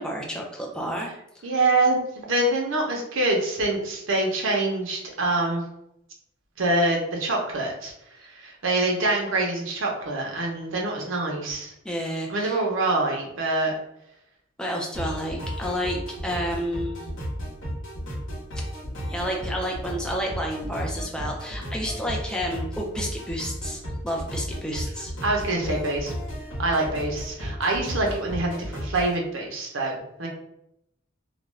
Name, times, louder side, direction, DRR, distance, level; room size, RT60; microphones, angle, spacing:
voice 1, 0.0-1.4 11.8-12.6 14.6-17.0 19.1-25.1, equal, 5° left, -1 dB, 0.4 m, -30 dB
voice 2, 1.4-5.6 6.6-7.9 8.2-11.7 12.3-13.7 25.2-26.1 26.6-30.3, right 2 dB, 70° right, 0 dB, 0.7 m, -25 dB
sound 1, 14.9-29.2, equal, 75° left, 1.0 m, -34 dB
2.4 x 2.2 x 3.1 m, 0.78 s
head